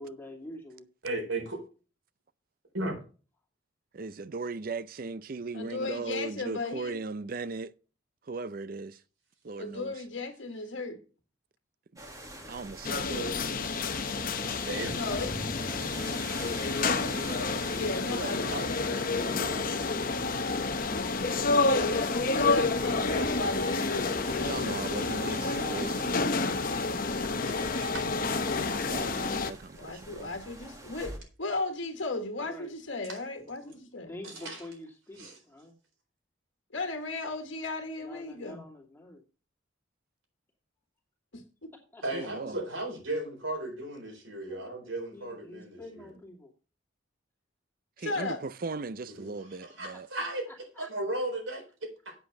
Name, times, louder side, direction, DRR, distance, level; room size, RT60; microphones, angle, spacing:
voice 1, 0.0-0.9 12.0-12.6 15.0-15.4 15.6-17.0 19.2-20.5 25.5-26.2 32.4-32.7 33.6-33.8 34.1-35.8 38.0-39.2 41.9-42.0 44.5-46.5 49.9-50.9, left 1 dB, 10° left, 2.4 m, -47 dB
voice 2, 1.0-1.6 2.7-3.0 14.6-15.0 27.2-28.1 33.1-33.2 34.2-34.6 35.2-35.4 42.0-46.0 49.2-49.3 49.6-50.5 50.8-52.1, right 2 dB, 80° right, 4.2 m, -36 dB
voice 3, 3.9-7.7 8.3-9.0 9.4-9.9 11.9-12.0 12.5-13.3 18.2-18.7 19.0-19.1 19.4-19.5 21.7-21.9 22.6-22.8 24.4-26.6 28.9-30.3 42.1-42.6 48.0-50.1, right 3 dB, 45° right, 0.5 m, -38 dB
voice 4, 5.5-7.0 9.6-11.0 14.9-15.4 15.7-16.1 17.8-19.4 21.6-24.8 29.4-29.5 29.8-34.1 36.7-38.6 41.3-41.7 48.0-48.4, left 2 dB, 70° left, 1.5 m, -36 dB
sound 1, 12.0-31.2, right 1 dB, 15° right, 1.6 m, -45 dB
sound 2, 12.8-29.5, left 3 dB, 45° left, 0.8 m, -29 dB
8.4 x 7.7 x 5.9 m
head